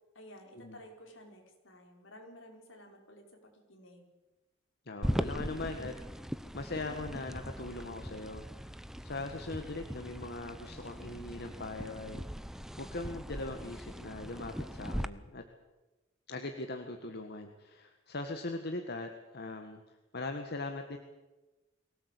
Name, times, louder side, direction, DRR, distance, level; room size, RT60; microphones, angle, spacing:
voice 1, 0.1-4.1, equal, 75° left, 2 dB, 5.2 m, -53 dB
voice 2, 4.8-8.7 9.0-12.4 12.8-15.4 16.3-19.8 20.1-21.0, left 2 dB, 55° left, 5 dB, 1.7 m, -40 dB
sound 1, 5.0-15.1, equal, ahead, 0.7 m, -40 dB
23.5 x 17.5 x 8.5 m, 1.1 s
head